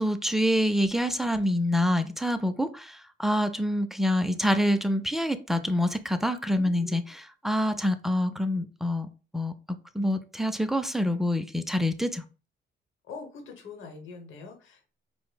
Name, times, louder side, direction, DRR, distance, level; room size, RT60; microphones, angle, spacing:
voice 1, 0.0-9.1 9.3-9.5 9.9-12.2, equal, ahead, 0.3 m, -26 dB
voice 2, 6.5-7.0 13.1-14.9, left 4 dB, 80° left, 0.9 m, -44 dB
4.9 x 2.0 x 2.2 m
cardioid pair, 90°, 20 cm